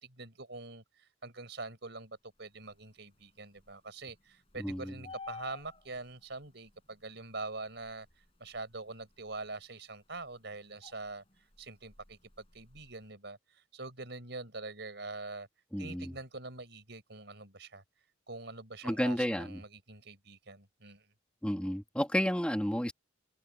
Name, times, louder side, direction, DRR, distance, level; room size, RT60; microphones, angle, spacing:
voice 1, 0.0-12.2 12.5-15.5 15.8-17.8 18.3-21.1, right 3 dB, 60° right, 5.7 m, -44 dB
sound 1, 4.6-6.2 8.6-8.7 10.8-11.2 11.6-11.7 11.9-12.9, left 4 dB, 30° left, 7.7 m, -47 dB
voice 2, 4.6-4.9 15.7-16.1 18.8-19.6 21.4-22.9, equal, 5° left, 3.2 m, -31 dB
head